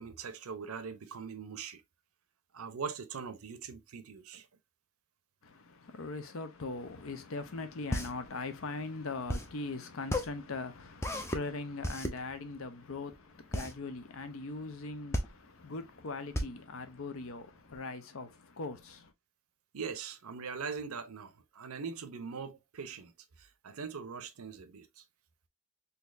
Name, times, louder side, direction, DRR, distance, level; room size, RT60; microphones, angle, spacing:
voice 1, 0.0-1.8 2.5-4.5 19.7-23.1 23.4-25.0, right 5 dB, 90° right, 0.6 m, -41 dB
voice 2, 5.4-19.1, left 3 dB, 70° left, 0.7 m, -41 dB
sound 1, 7.5-17.8, left 1 dB, 10° left, 0.5 m, -36 dB
4.1 x 2.8 x 2.5 m
head